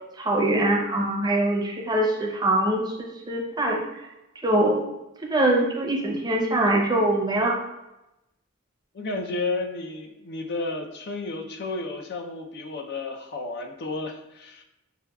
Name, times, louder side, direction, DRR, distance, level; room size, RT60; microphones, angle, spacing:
voice 1, 0.2-3.8 4.4-4.9 5.2-7.5, right 1 dB, 20° right, -1 dB, 0.6 m, -23 dB
voice 2, 8.9-14.6, left 3 dB, 55° left, 3 dB, 0.5 m, -32 dB
6.6 x 2.3 x 2.2 m, 0.93 s
head